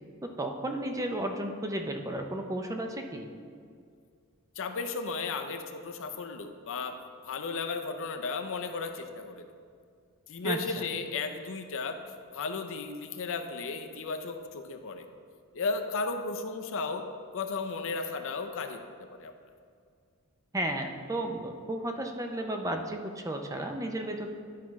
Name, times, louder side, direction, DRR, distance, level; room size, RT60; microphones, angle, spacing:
voice 1, 0.2-3.3 10.4-10.8 20.5-24.4, right 1 dB, 15° right, 4 dB, 0.5 m, -33 dB
voice 2, 4.6-7.0 7.2-9.4 10.3-12.0 12.3-15.1 15.5-17.0 17.3-18.8 19.1-19.3, left 4 dB, 60° left, 6 dB, 0.6 m, -34 dB
11.0 x 4.7 x 3.1 m, 2.2 s
head